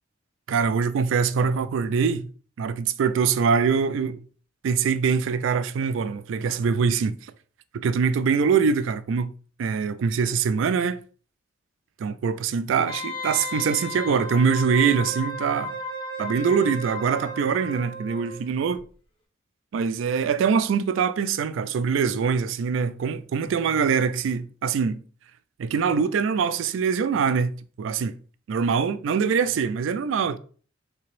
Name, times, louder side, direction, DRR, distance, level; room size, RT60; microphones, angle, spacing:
voice 1, 0.5-2.3 2.6-4.2 4.6-7.1 7.7-9.3 9.6-11.0 12.0-15.7 16.2-18.8 19.7-25.0 25.6-28.2 28.5-30.4, right 6 dB, 70° right, 0.3 m, -23 dB
Wind instrument woodwind instrument, 12.9-18.4 18.7-18.8, left 1 dB, 25° left, 0.8 m, -34 dB
3.3 x 2.9 x 3.1 m
head